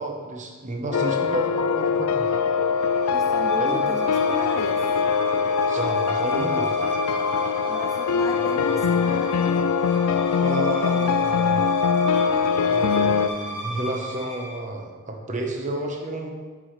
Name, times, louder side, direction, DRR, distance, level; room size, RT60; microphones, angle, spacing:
voice 1, 0.0-2.3 3.6-3.9 5.7-6.8 8.7-8.8 10.4-11.6 12.7-16.3, right 1 dB, 35° right, 1 dB, 0.9 m, -31 dB
sound 1, 0.9-13.3, left 6 dB, 85° left, 0.4 m, -22 dB
sound 2, 1.9-14.6, right 1 dB, 55° left, 1.5 m, -36 dB
voice 2, 3.1-4.8 7.7-9.7, left 1 dB, 15° left, 3 dB, 0.3 m, -34 dB
9.7 x 4.9 x 3.2 m, 1.5 s
head